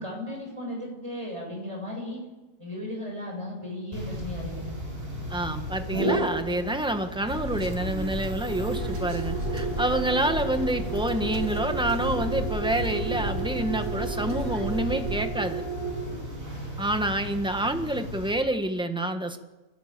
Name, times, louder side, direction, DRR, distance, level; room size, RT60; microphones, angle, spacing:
voice 1, 0.0-2.2 2.6-4.7, left 1 dB, 20° right, -1 dB, 8.0 m, -35 dB
sound 1, 3.9-18.3, right 2 dB, 40° right, 7.8 m, -33 dB
voice 2, 5.3-15.6 16.8-19.4, right 1 dB, 5° right, 6 dB, 1.4 m, -28 dB
sound 2, 7.2-15.2, equal, 80° right, 3.5 m, -34 dB
30.0 x 12.5 x 7.6 m, 1.1 s
omnidirectional pair, 1.4 m